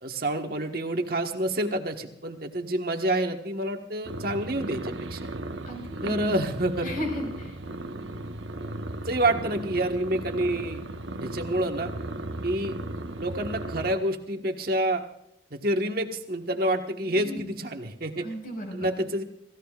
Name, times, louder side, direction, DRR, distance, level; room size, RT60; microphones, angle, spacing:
voice 1, 0.0-5.3 6.0-6.9 9.0-10.8 11.2-11.9 12.4-12.8 13.2-15.0 15.5-18.2 18.8-19.2, right 1 dB, 50° right, 4 dB, 1.5 m, -28 dB
sound 1, 4.0-13.9, right 2 dB, 80° right, 1.1 m, -36 dB
voice 2, 5.7-6.2 6.8-7.6 17.0-17.5 18.2-18.9, equal, 50° left, 3 dB, 5.2 m, -35 dB
29.0 x 15.5 x 2.5 m, 0.77 s
head